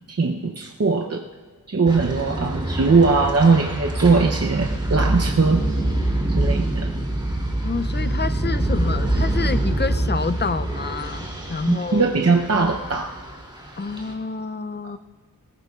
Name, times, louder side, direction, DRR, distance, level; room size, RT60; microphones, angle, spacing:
voice 1, 0.1-1.3 1.7-5.6 6.3-6.9 11.7-13.1, right 4 dB, 45° right, 2 dB, 0.7 m, -20 dB
sound 1, 1.9-14.1, right 1 dB, 15° right, 2.8 m, -25 dB
voice 2, 7.6-12.1 13.8-15.0, left 4 dB, 30° left, 12 dB, 0.5 m, -28 dB
20.0 x 18.5 x 2.4 m, 1.5 s
wide cardioid pair, 70°, 35 cm